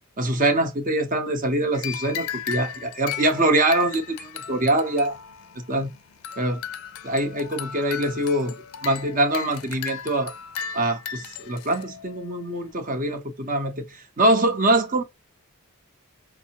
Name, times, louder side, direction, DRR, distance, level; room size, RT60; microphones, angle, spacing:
voice 1, 0.2-5.2 5.7-5.9 6.4-6.6 7.0-8.5 8.8-10.3 10.7-15.0, right 1 dB, 35° right, 0.8 m, -23 dB
sound 1, 1.7-12.7, left 8 dB, 65° left, 0.4 m, -36 dB
5.3 x 2.0 x 2.8 m
head